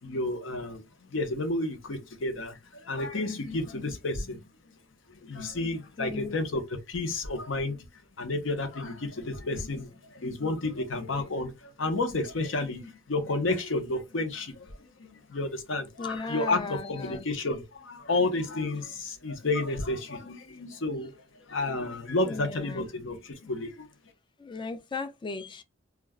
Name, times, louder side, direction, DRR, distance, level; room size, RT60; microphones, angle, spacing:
voice 1, 0.0-4.5 5.1-7.8 8.2-21.1 21.5-23.9, left 2 dB, 70° left, 0.7 m, -31 dB
voice 2, 6.0-6.4 16.0-17.3 22.3-22.9 24.4-25.6, left 3 dB, 25° left, 0.4 m, -36 dB
2.3 x 2.1 x 3.4 m
head